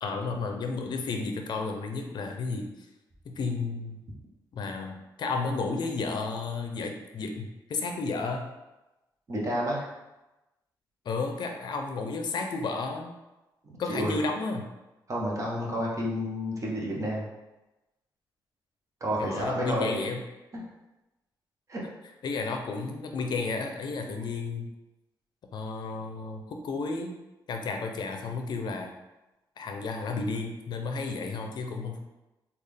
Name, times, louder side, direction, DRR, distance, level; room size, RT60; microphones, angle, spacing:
voice 1, 0.0-2.7 3.3-4.0 4.5-8.5 11.1-13.1 13.8-14.7 19.2-20.2 22.2-24.7 25.5-27.1 27.5-28.9 29.6-32.0, left 4 dB, 60° left, 3 dB, 0.5 m, -32 dB
voice 2, 9.3-9.8 13.6-14.1 15.1-17.3 19.0-20.1 20.5-20.6 21.7-21.8, equal, 40° right, -3 dB, 0.9 m, -30 dB
3.6 x 2.4 x 3.3 m, 1.0 s
cardioid pair, 105°, 8 cm